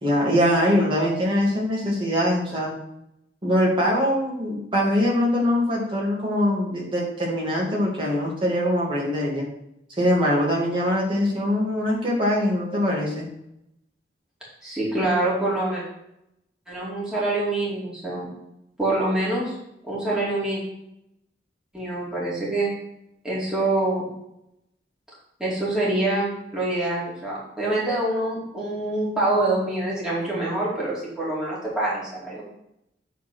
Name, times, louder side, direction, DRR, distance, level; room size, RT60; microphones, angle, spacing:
voice 1, 0.0-2.7 3.4-9.5 10.0-13.3, equal, 30° right, -3 dB, 2.4 m, -22 dB
voice 2, 14.6-15.8 16.7-18.3 18.8-19.5 19.8-20.6 21.7-22.7 23.2-24.0 25.4-32.4, right 2 dB, 5° right, -8 dB, 2.7 m, -25 dB
8.4 x 4.2 x 6.1 m, 0.82 s
head